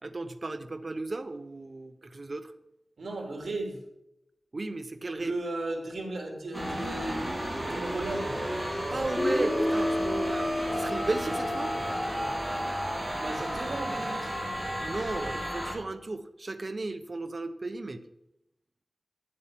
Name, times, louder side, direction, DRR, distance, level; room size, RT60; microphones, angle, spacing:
voice 1, 0.0-2.5 4.5-5.3 8.9-11.8 14.8-18.0, right 2 dB, 45° right, 10 dB, 0.8 m, -35 dB
voice 2, 3.0-3.8 5.2-7.2 7.5-8.3 13.1-14.3, right 2 dB, 85° right, 1 dB, 2.9 m, -35 dB
sound 1, 6.5-15.7, equal, 15° right, 3.4 m, -32 dB
Guitar, 9.2-13.1, left 1 dB, 20° left, 3.8 m, -32 dB
10.5 x 7.7 x 5.8 m, 0.86 s
wide cardioid pair, 90°, 0 cm